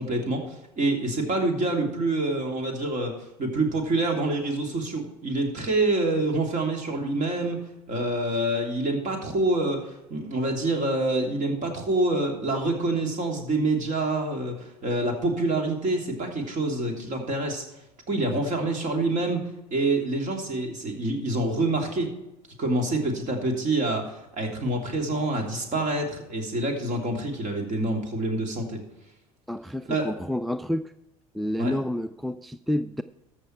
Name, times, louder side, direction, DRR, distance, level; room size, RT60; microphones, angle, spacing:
voice 1, 0.0-7.6 7.9-17.6 18.1-19.4 19.7-22.1 22.6-28.8 29.9-30.1 31.6-31.7, right 2 dB, 45° right, 2 dB, 3.0 m, -26 dB
voice 2, 29.5-30.9 31.3-33.0, left 1 dB, ahead, 13 dB, 0.3 m, -29 dB
13.5 x 6.4 x 4.6 m, 0.93 s
hypercardioid pair, 70°, 19 cm